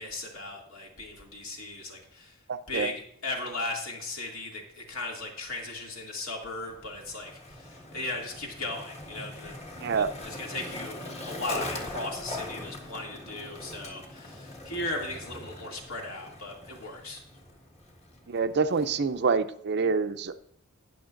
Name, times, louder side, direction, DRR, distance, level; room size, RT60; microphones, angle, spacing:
voice 1, 0.0-2.4 2.7-9.5 9.9-17.2, left 2 dB, 65° left, 0 dB, 2.5 m, -37 dB
voice 2, 2.5-2.9 9.8-10.1 18.3-20.3, right 5 dB, 50° right, 10 dB, 0.5 m, -26 dB
Skateboard, 6.6-19.3, left 1 dB, 30° left, 1.6 m, -42 dB
19.0 x 6.5 x 2.6 m, 0.70 s
head